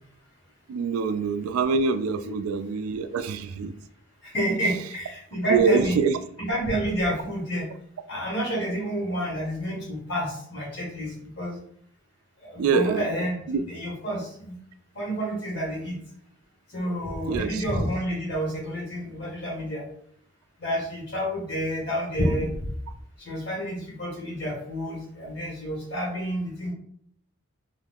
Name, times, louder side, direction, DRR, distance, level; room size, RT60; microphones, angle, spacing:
voice 1, 0.7-3.7 5.5-6.1 12.6-13.1 13.5-13.6 17.3-17.6, right 5 dB, 90° right, 11 dB, 0.3 m, -24 dB
voice 2, 4.2-6.0 6.4-7.7 8.1-11.6 12.4-13.3 13.7-14.5 14.9-16.0 16.7-19.8 20.6-22.5 23.2-26.7, equal, 55° left, -3 dB, 1.3 m, -29 dB
2.5 x 2.4 x 3.4 m, 0.66 s
head